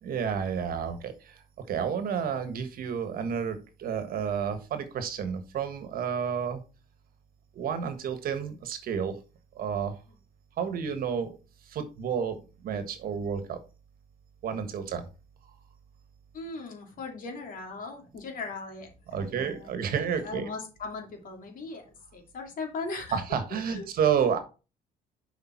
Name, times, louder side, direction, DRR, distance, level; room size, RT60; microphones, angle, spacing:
voice 1, 0.0-6.6 7.5-9.2 9.5-10.0 10.6-11.4 11.7-13.6 14.4-15.1 19.1-20.5 23.1-24.4, right 7 dB, 60° right, 9 dB, 1.5 m, -30 dB
voice 2, 16.3-21.8 22.1-23.2 23.6-23.9, left 3 dB, 55° left, 3 dB, 2.6 m, -39 dB
6.9 x 5.1 x 4.5 m, 0.32 s
cardioid pair, 110°, 17 cm